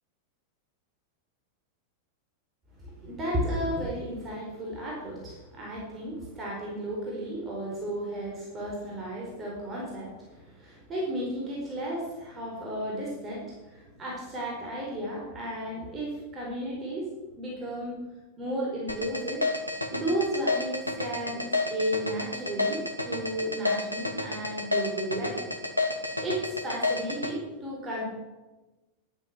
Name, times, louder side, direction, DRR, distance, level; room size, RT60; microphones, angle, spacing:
voice 1, 2.8-17.1 17.4-18.0 18.4-19.4 19.9-25.5 26.2-28.0, right 1 dB, 25° right, -3 dB, 4.8 m, -33 dB
sound 1, 18.9-27.3, left 2 dB, 90° left, 1.5 m, -29 dB
12.0 x 11.5 x 6.2 m, 1.1 s
figure-of-eight pair, 90°, 0 cm